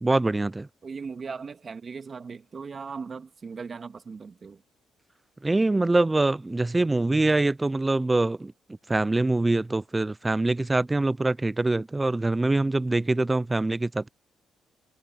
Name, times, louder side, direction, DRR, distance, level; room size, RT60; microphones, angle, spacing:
voice 1, 0.0-0.7 5.4-8.5 8.9-14.1, right 2 dB, 15° right, 0.3 m, -24 dB
voice 2, 0.8-4.6, right 5 dB, 40° right, 1.9 m, -38 dB
cardioid pair, 90°, 0 cm